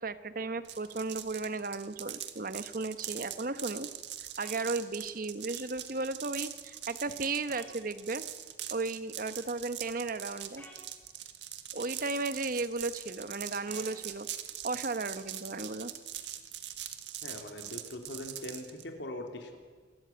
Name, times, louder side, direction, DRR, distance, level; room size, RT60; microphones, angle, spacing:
voice 1, 0.0-3.9 4.4-8.2 8.7-10.6 11.7-14.3 14.6-15.9, right 3 dB, 50° right, 12 dB, 1.0 m, -35 dB
sound 1, 0.6-18.8, right 11 dB, 90° right, 1.7 m, -42 dB
sound 2, 4.4-4.6 7.5-7.7 10.6-10.8 13.7-13.9, left 1 dB, 15° left, 5.2 m, -51 dB
voice 2, 17.2-19.6, left 1 dB, 85° left, 4 dB, 3.4 m, -41 dB
27.5 x 14.0 x 8.7 m, 1.5 s
head